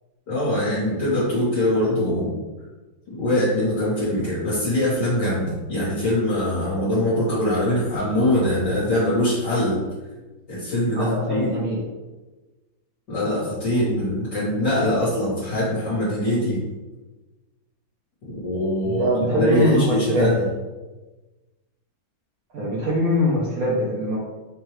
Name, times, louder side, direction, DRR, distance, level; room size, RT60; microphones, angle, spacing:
voice 1, 0.3-2.4 3.1-9.8 10.5-11.5 13.1-16.6 18.2-20.5, left 1 dB, 60° left, -10 dB, 1.6 m, -23 dB
voice 2, 10.9-11.8 19.0-20.3 22.5-24.2, equal, 65° right, -5 dB, 0.9 m, -22 dB
4.6 x 2.2 x 3.1 m, 1.2 s
omnidirectional pair, 2.2 m